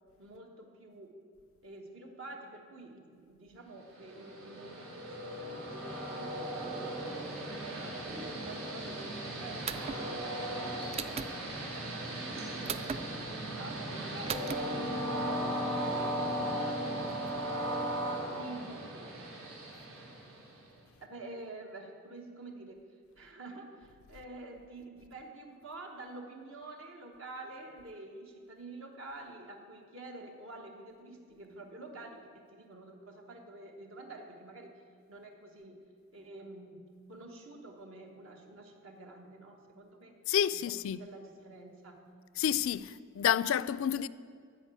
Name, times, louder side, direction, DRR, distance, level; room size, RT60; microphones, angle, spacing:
voice 1, 0.2-1.1 1.6-6.8 7.2-8.1 8.4-10.7 11.0-12.9 13.3-14.5 18.4-19.1 21.0-22.8 23.2-34.8 35.1-35.8 36.1-40.1 40.5-40.7 41.0-42.0, right 2 dB, 65° right, 1.3 m, -48 dB
Train, 3.9-20.7, right 1 dB, 85° right, 2.9 m, -37 dB
sound 1, 9.7-10.0 10.9-11.3 12.7-13.0 14.3-14.6, right 6 dB, 30° right, 0.3 m, -36 dB
voice 2, 40.3-41.0 42.4-44.1, left 9 dB, 65° left, 0.3 m, -29 dB
13.5 x 5.0 x 8.3 m
head